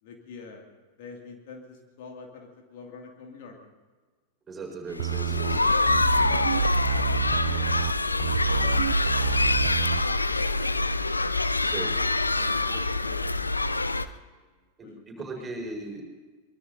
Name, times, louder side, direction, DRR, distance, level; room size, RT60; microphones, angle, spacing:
voice 1, 0.0-3.7 5.3-5.7 6.0-9.7 10.0-10.1 12.3-13.3 14.2-14.5 14.8-15.0 15.4-15.5, left 4 dB, 50° left, 2 dB, 2.3 m, -47 dB
voice 2, 4.5-5.7 11.6-12.0 14.8-16.0, right 3 dB, 20° right, 0 dB, 5.1 m, -37 dB
sound 1, 5.0-14.0, left 2 dB, 80° left, 0.6 m, -25 dB
sound 2, 5.0-10.0, right 12 dB, 60° right, 0.4 m, -29 dB
23.5 x 22.5 x 2.7 m, 1.4 s
figure-of-eight pair, 90°, 0 cm